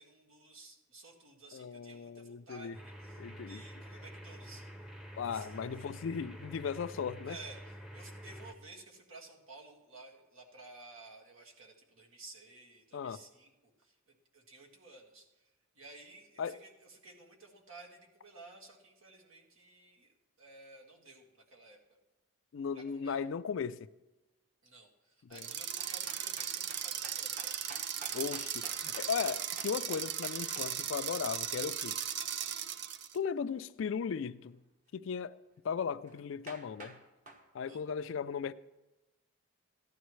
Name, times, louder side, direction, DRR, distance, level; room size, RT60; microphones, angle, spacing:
voice 1, 0.0-4.6 5.2-5.8 7.3-15.5 15.8-21.8 22.7-23.2 24.6-27.5 37.7-37.8, right 3 dB, 80° right, 1.8 m, -54 dB
voice 2, 1.5-2.7 3.2-3.6 5.2-7.4 12.9-13.2 16.4-16.6 22.5-23.8 25.3-25.5 28.1-32.0 33.1-34.6 34.9-35.3 35.6-37.0 37.5-38.5, left 6 dB, 65° left, 0.3 m, -37 dB
sound 1, 2.7-8.5, equal, 5° right, 0.7 m, -48 dB
sound 2, 25.3-33.2, right 9 dB, 55° right, 0.5 m, -37 dB
sound 3, 25.8-30.7 36.1-36.2 36.5-37.0 37.3-37.4, right 2 dB, 35° right, 1.2 m, -50 dB
14.5 x 11.5 x 3.1 m
head